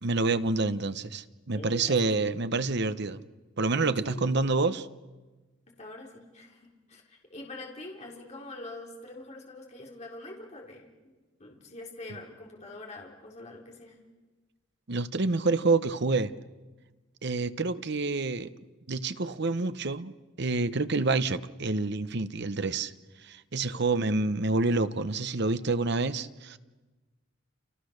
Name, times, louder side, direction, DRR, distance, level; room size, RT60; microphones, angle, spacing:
voice 1, 0.0-3.2 3.6-4.9 14.9-16.3 17.2-18.5 18.9-20.1 20.4-22.9 23.2-26.6, right 3 dB, 60° right, 1.0 m, -28 dB
voice 2, 1.5-2.4 4.0-4.3 5.7-11.1 11.4-14.0 23.7-23.9, left 2 dB, 35° left, 3.9 m, -45 dB
29.5 x 29.5 x 6.6 m
head